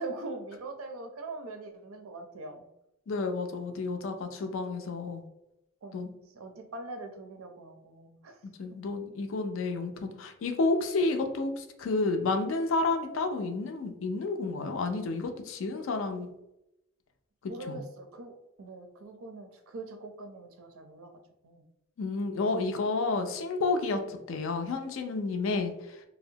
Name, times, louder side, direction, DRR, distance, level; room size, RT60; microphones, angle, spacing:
voice 1, 0.0-2.6 5.8-8.4 15.8-15.9 17.5-21.1 21.4-21.6 23.9-24.1, right 2 dB, 85° right, 5 dB, 0.5 m, -42 dB
voice 2, 3.1-5.2 5.9-6.1 8.6-16.3 17.7-17.8 22.0-25.7, left 3 dB, 65° left, 6 dB, 0.4 m, -30 dB
2.6 x 2.0 x 2.7 m, 0.87 s
head